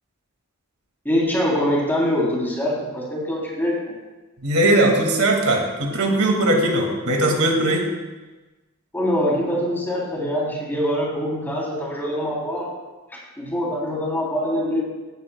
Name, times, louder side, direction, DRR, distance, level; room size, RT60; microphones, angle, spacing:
voice 1, 1.0-3.8 8.9-12.7 13.4-14.8, equal, 10° left, -5 dB, 3.2 m, -23 dB
voice 2, 4.4-7.9, right 1 dB, 85° right, 1 dB, 2.1 m, -19 dB
16.5 x 9.0 x 2.3 m, 1.2 s
head